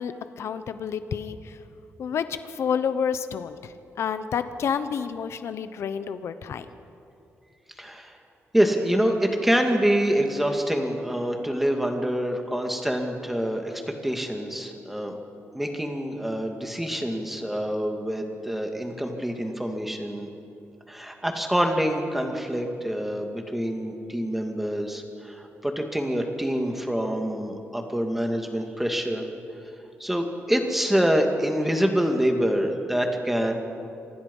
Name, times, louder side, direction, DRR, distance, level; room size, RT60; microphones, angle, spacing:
voice 1, 0.0-1.6 2.0-6.7, left 7 dB, 65° left, 11 dB, 1.0 m, -29 dB
voice 2, 7.8-8.2 8.5-15.2 15.5-20.3 20.9-29.3 30.0-33.5, equal, 5° right, 3 dB, 2.3 m, -26 dB
27.5 x 24.5 x 5.6 m, 2.7 s
wide cardioid pair, 155°, 5 cm